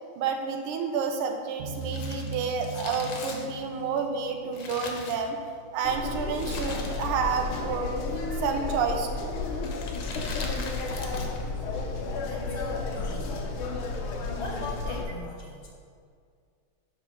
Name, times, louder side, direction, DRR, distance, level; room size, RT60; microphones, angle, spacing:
voice 1, 0.2-5.4 5.7-7.9 8.2-9.4, right 5 dB, 85° right, 4 dB, 1.6 m, -30 dB
sound 1, 1.6-5.3, right 2 dB, 60° right, 0.9 m, -39 dB
Crumpling crinkling, 1.7-5.7 6.3-7.4 7.6-7.7 8.6-8.9 9.6-11.5 11.7-11.8, left 3 dB, 70° left, 1.6 m, -40 dB
sound 2, 5.8-15.1, left 3 dB, 90° left, 1.7 m, -32 dB
voice 2, 12.2-13.7 14.2-15.7, left 2 dB, 50° left, -2 dB, 1.5 m, -40 dB
6.6 x 5.5 x 5.1 m, 2.2 s
omnidirectional pair, 2.4 m